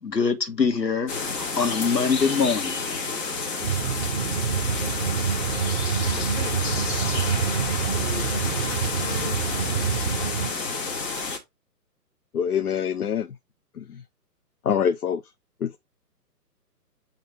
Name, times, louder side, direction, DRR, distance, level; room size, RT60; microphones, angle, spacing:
voice 1, 0.0-2.8, left 5 dB, 80° left, 1.8 m, -24 dB
sound 1, 1.1-11.4, left 4 dB, 20° left, 1.4 m, -29 dB
sound 2, 3.6-10.5, right 7 dB, 25° right, 0.7 m, -27 dB
voice 2, 6.1-9.0, left 1 dB, ahead, 0.8 m, -43 dB
voice 3, 12.3-13.4 13.8-14.0 14.6-15.2 15.6-15.8, left 8 dB, 65° left, 0.8 m, -25 dB
8.5 x 3.2 x 3.6 m
figure-of-eight pair, 140°, 49 cm